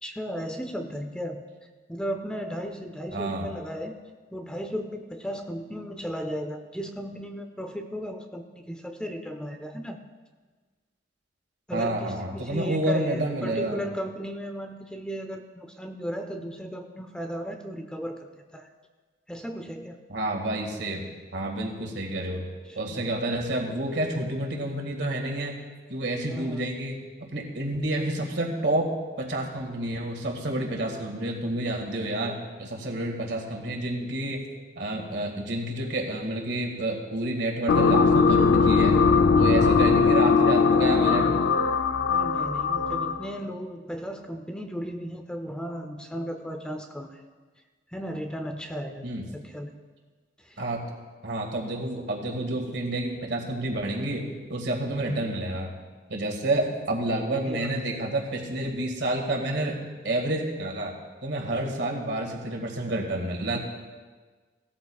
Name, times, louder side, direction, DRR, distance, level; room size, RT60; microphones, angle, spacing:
voice 1, 0.0-1.5 1.9-4.0 4.3-10.0 11.7-18.7 19.3-20.0 22.7-23.0 26.3-26.6 40.0-40.3 42.1-47.2 47.9-49.7 50.4-50.7 55.0-55.3 57.5-57.8, equal, 5° left, 5 dB, 0.5 m, -35 dB
voice 2, 3.1-3.5 11.7-13.8 20.1-21.0 21.3-22.5 22.8-25.6 25.9-27.0 27.3-28.9 29.2-34.4 34.8-39.0 39.3-41.3 49.0-49.2 50.6-50.9 51.2-55.7 56.1-59.8 60.0-60.9 61.2-63.6, right 1 dB, 65° right, 1 dB, 1.9 m, -29 dB
sound 1, 37.7-43.3, left 5 dB, 75° left, 0.5 m, -20 dB
17.5 x 13.0 x 2.3 m, 1.4 s
head